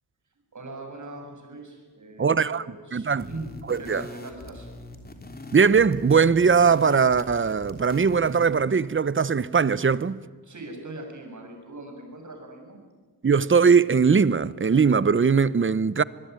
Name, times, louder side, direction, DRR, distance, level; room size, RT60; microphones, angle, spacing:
voice 1, 0.5-4.7 10.4-12.8, right 2 dB, 50° right, 7.5 m, -41 dB
voice 2, 2.2-2.6 2.9-3.3 3.7-4.0 5.5-10.2 13.2-16.0, right 5 dB, 30° right, 0.8 m, -20 dB
sound 1, 3.2-8.6, left 2 dB, 25° left, 3.1 m, -42 dB
25.0 x 21.5 x 9.6 m
wide cardioid pair, 100°, 39 cm